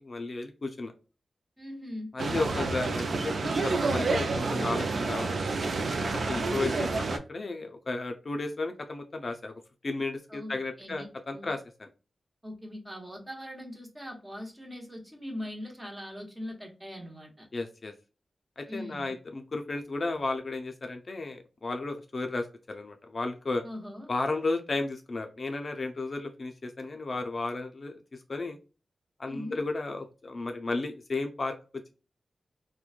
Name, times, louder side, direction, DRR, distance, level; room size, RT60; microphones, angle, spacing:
voice 1, 0.1-0.9 2.1-5.4 6.0-9.5 9.8-11.9 17.5-17.9 18.6-23.6 24.1-28.0 28.3-28.6 29.2-31.5, left 3 dB, 45° left, 5 dB, 0.4 m, -33 dB
voice 2, 1.6-2.1 6.2-6.8 10.3-11.5 12.4-17.5 18.7-19.1 23.6-24.1 29.2-29.6, left 1 dB, 15° right, 2 dB, 0.8 m, -41 dB
sound 1, 2.2-7.2, right 3 dB, 70° right, 0.3 m, -29 dB
3.0 x 2.1 x 2.3 m, 0.33 s
wide cardioid pair, 110°, 0 cm